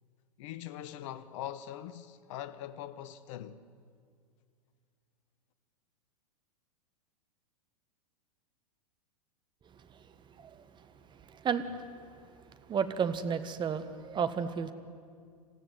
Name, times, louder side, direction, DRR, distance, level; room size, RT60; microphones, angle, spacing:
voice 1, 0.4-3.6, left 11 dB, 55° left, 1.1 m, -42 dB
voice 2, 10.4-10.9 11.2-11.8 12.6-14.7, right 6 dB, 25° right, 1.5 m, -33 dB
27.5 x 15.5 x 9.4 m
hypercardioid pair, 100°, 19 cm